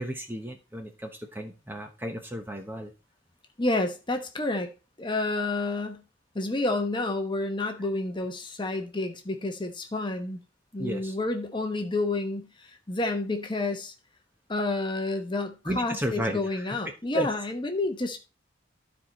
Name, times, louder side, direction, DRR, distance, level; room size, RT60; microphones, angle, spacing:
voice 1, 0.0-2.9 10.8-11.1 15.7-16.8 17.1-17.3, right 1 dB, 10° right, 0.9 m, -33 dB
voice 2, 3.6-4.7 5.0-6.0 6.3-10.4 10.7-13.9 14.5-18.2, left 2 dB, 25° left, 1.0 m, -29 dB
12.5 x 4.7 x 4.2 m
head